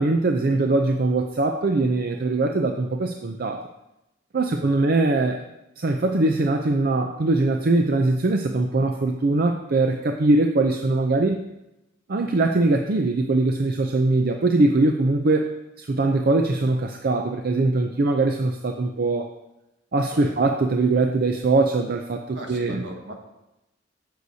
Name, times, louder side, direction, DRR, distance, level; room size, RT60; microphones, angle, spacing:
voice 1, 0.0-3.6 4.3-5.4 5.8-11.4 12.1-15.5 15.8-19.3 19.9-22.9, right 2 dB, 50° right, 4 dB, 0.5 m, -22 dB
voice 2, 22.3-23.1, right 1 dB, 70° right, 1 dB, 1.6 m, -39 dB
15.5 x 6.4 x 2.8 m, 0.93 s
head